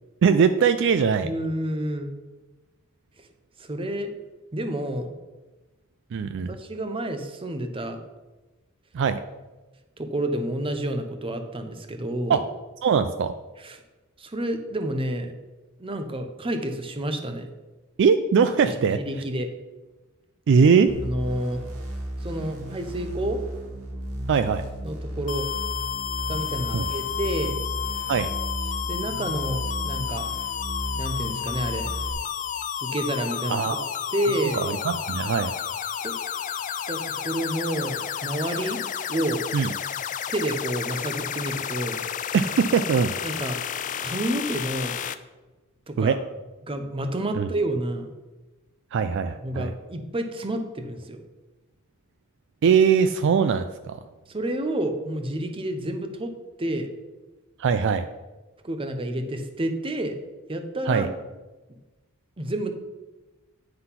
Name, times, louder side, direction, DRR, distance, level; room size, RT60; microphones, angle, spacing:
voice 1, 0.2-1.3 6.1-6.6 8.9-9.2 12.3-12.4 12.8-13.3 18.0-19.0 20.5-20.9 24.3-24.6 26.7-26.9 28.1-28.3 33.5-33.8 34.5-35.5 39.5-39.7 42.3-43.1 46.0-46.2 47.3-47.5 48.9-49.7 52.6-54.0 57.6-58.1 60.9-61.1, right 6 dB, 55° right, 10 dB, 0.3 m, -21 dB
voice 2, 1.2-2.1 3.2-3.3 3.6-4.1 4.5-5.1 6.5-8.0 10.0-12.4 13.6-13.8 14.2-15.3 15.8-17.5 18.6-19.5 21.0-21.6 22.2-23.4 24.8-25.5 26.3-27.6 28.7-30.3 31.0-31.9 32.8-33.8 34.1-34.6 36.0-36.1 36.9-38.8 39.1-39.4 40.3-42.0 43.2-43.6 44.0-45.0 45.9-46.2 46.7-48.1 49.4-51.2 54.3-56.3 56.6-56.9 58.6-60.1 60.5-61.1 62.4-62.7, right 1 dB, 25° right, 7 dB, 0.7 m, -29 dB
sound 1, 20.9-32.1, right 1 dB, 85° right, 1.4 m, -34 dB
sound 2, 25.3-45.1, left 9 dB, 35° left, 0.3 m, -31 dB
9.6 x 3.9 x 5.7 m, 1.1 s
head